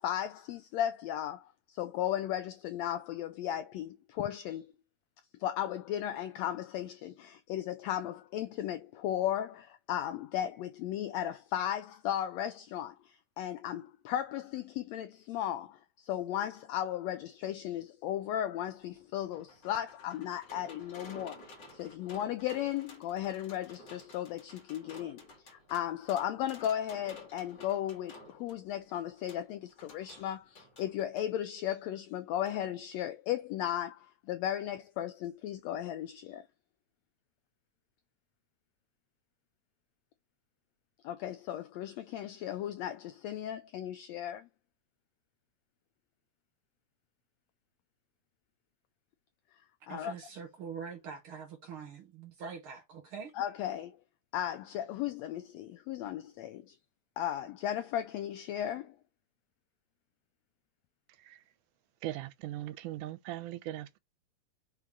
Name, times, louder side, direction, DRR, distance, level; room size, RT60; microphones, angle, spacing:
voice 1, 0.0-4.7 5.4-36.5 41.0-44.5 49.9-50.1 53.4-54.0 54.3-56.7 57.2-58.9, left 11 dB, 90° left, 1.5 m, -36 dB
sound 1, 18.8-31.3 32.5-32.6 32.9-33.0, left 1 dB, 40° left, 2.2 m, -54 dB
voice 2, 49.9-53.3, right 6 dB, 60° right, 1.4 m, -44 dB
voice 3, 62.0-64.0, right 14 dB, 80° right, 2.0 m, -40 dB
5.5 x 3.7 x 4.6 m
omnidirectional pair, 3.6 m